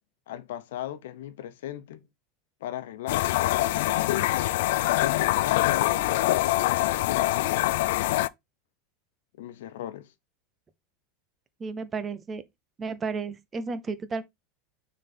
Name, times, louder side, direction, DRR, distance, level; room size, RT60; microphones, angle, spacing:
voice 1, 0.3-2.1 2.6-4.5 5.0-7.7 9.4-10.1, left 11 dB, 85° left, 0.9 m, -37 dB
sound 1, 3.1-8.3, left 16 dB, 70° left, 0.4 m, -24 dB
voice 2, 11.6-12.4 12.8-14.2, right 4 dB, 15° right, 0.6 m, -33 dB
6.4 x 4.0 x 4.2 m
supercardioid pair, 165°, 0 cm